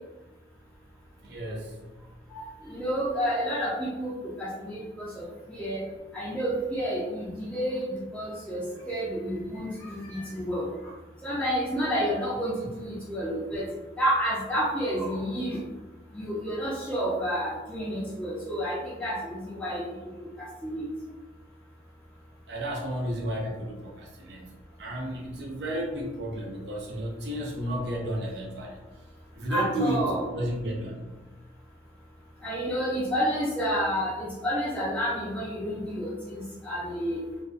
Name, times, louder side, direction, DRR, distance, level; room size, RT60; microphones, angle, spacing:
voice 1, 1.2-1.7 22.5-28.8 29.3-31.1, equal, 75° right, -2 dB, 0.6 m, -32 dB
voice 2, 2.3-5.2 5.5-5.8 6.1-8.6 8.9-10.7 11.2-13.7 14.0-15.6 16.1-19.8 20.6-20.9 29.5-30.2 32.4-37.2, equal, 5° left, -10 dB, 0.5 m, -30 dB
2.5 x 2.2 x 2.4 m, 1.1 s
head